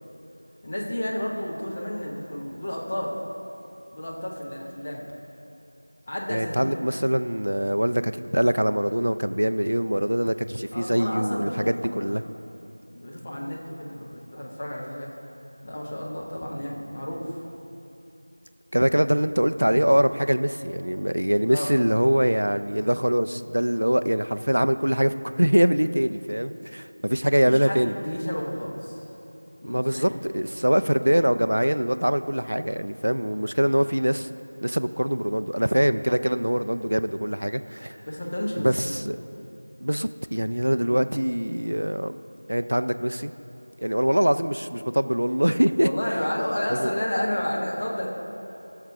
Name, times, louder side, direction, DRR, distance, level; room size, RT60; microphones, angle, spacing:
voice 1, 0.6-3.2 3.9-5.0 6.1-6.7 10.7-12.3 12.9-15.1 15.6-17.4 21.5-21.7 27.5-29.0 29.6-30.2 38.1-38.9 40.8-41.0 45.8-48.1, left 1 dB, 10° left, -3 dB, 0.5 m, -31 dB
voice 2, 6.3-12.2 18.7-27.9 29.6-34.3 34.6-38.0 38.6-39.2 39.8-42.2 42.5-43.3 43.8-45.9 46.7-46.9, equal, 50° right, 11 dB, 0.3 m, -23 dB
17.0 x 6.5 x 3.5 m, 2.9 s
figure-of-eight pair, 180°, 0 cm